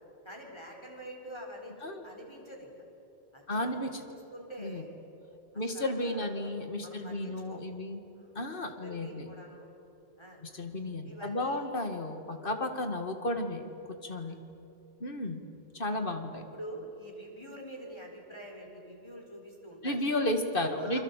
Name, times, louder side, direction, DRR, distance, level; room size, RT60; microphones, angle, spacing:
voice 1, 0.2-2.7 3.3-4.9 5.7-6.5 6.8-7.6 8.2-9.6 10.2-10.4 11.0-11.7 12.4-12.6 14.2-14.4 16.5-20.0 20.7-21.0, right 1 dB, 25° left, 0 dB, 4.5 m, -46 dB
voice 2, 3.5-4.0 4.6-4.8 5.5-8.0 8.3-9.3 10.4-14.4 15.0-15.4 15.7-16.4 19.8-21.0, left 1 dB, 50° left, 6 dB, 2.3 m, -33 dB
29.0 x 23.5 x 8.4 m, 2.9 s
omnidirectional pair, 1.2 m